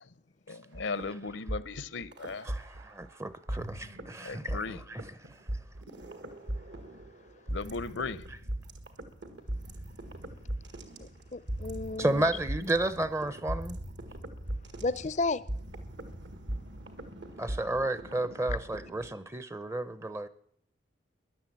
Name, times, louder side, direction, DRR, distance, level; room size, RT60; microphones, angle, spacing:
voice 1, 0.5-2.5 4.2-4.8 7.5-8.2, left 4 dB, 75° left, 0.8 m, -36 dB
sound 1, 0.7-3.1 3.5-19.1, right 1 dB, 65° right, 1.8 m, -39 dB
voice 2, 2.4-5.1 12.0-13.8 17.4-20.3, right 1 dB, 15° right, 0.7 m, -32 dB
voice 3, 11.0-12.3 14.8-15.4, left 3 dB, 35° left, 0.5 m, -33 dB
14.0 x 11.0 x 8.7 m
head